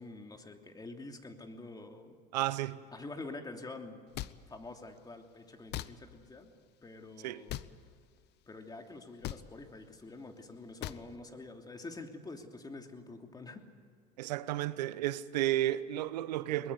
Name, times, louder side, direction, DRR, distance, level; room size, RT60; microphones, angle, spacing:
voice 1, 0.0-2.2 2.9-4.2 4.5-6.5 6.8-7.7 8.5-13.7, left 2 dB, 20° left, 2.9 m, -47 dB
voice 2, 2.3-2.8 7.2-7.4 14.2-16.7, right 14 dB, 85° right, 0.9 m, -32 dB
sound 1, 4.1-4.3 5.7-5.9 7.5-7.7 9.2-9.4 10.8-11.0, left 15 dB, 55° left, 0.9 m, -38 dB
22.5 x 20.5 x 8.1 m
hypercardioid pair, 85°, 21 cm